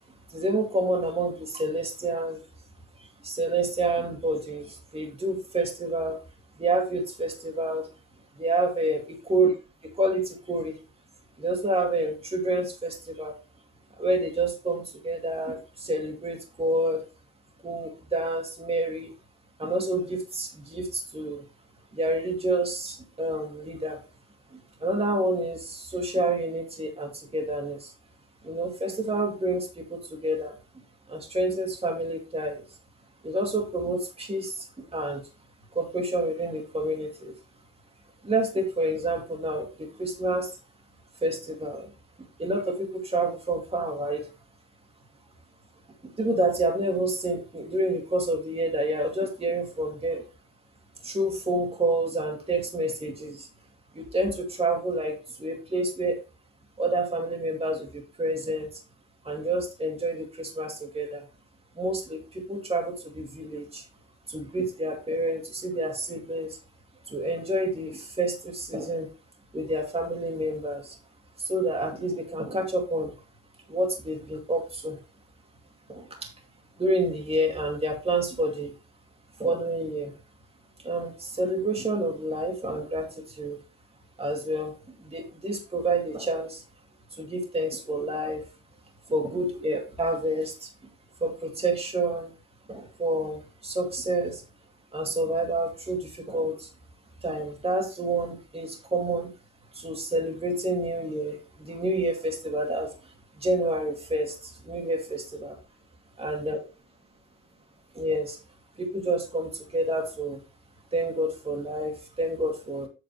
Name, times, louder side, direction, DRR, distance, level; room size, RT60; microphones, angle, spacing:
voice 1, 0.3-2.4 3.0-6.2 6.6-7.9 8.4-9.6 9.8-10.7 11.4-13.3 14.0-17.0 17.6-19.1 19.6-21.4 21.9-24.0 24.8-27.9 28.4-30.6 31.1-32.6 33.2-35.2 35.7-37.3 38.2-40.5 41.2-41.9 42.4-44.3 46.2-50.2 51.0-53.5 53.9-56.2 56.8-58.7 59.2-61.3 61.8-63.8 64.3-66.6 67.1-69.1 69.5-71.0 71.4-73.1 73.7-75.0 75.9-76.3 76.8-78.7 79.4-80.1 80.8-83.6 84.2-84.7 85.0-86.6 87.1-88.4 89.1-90.7 91.2-92.3 92.7-94.4 94.9-96.7 97.2-99.3 99.7-102.9 103.4-105.6 106.2-106.6 107.9-108.4 108.8-110.4 110.9-112.9, right 1 dB, 20° right, 2 dB, 2.5 m, -28 dB
8.4 x 6.5 x 3.3 m, 0.30 s
cardioid pair, 90°, 30 cm